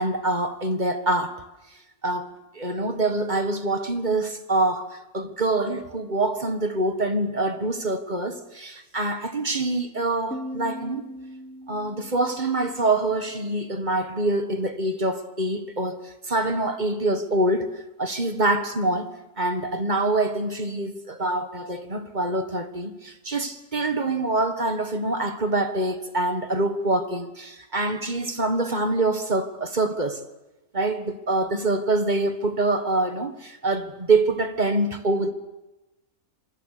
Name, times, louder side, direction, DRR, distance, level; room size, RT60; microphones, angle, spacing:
voice 1, 0.0-1.4 2.0-11.1 11.7-30.2 30.7-35.3, right 2 dB, 30° right, 1.7 m, -25 dB
Piano, 10.3-13.7, equal, 5° left, 1.3 m, -40 dB
26.5 x 25.0 x 6.8 m
omnidirectional pair, 1.6 m